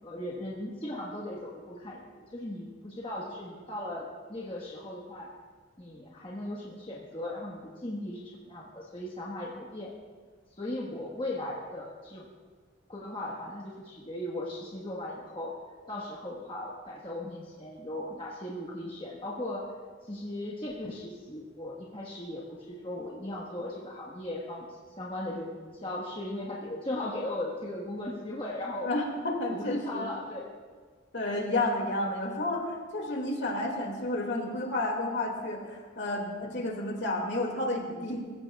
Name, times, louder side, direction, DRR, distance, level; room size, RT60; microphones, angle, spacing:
voice 1, 0.0-5.3 5.8-9.9 10.6-12.3 12.9-15.5 15.9-19.7 20.0-28.9 29.5-30.5, left 1 dB, 25° left, -4 dB, 1.4 m, -38 dB
voice 2, 28.8-30.1 31.1-38.3, left 1 dB, 55° left, 1 dB, 2.3 m, -31 dB
22.0 x 15.0 x 2.4 m, 1.5 s
head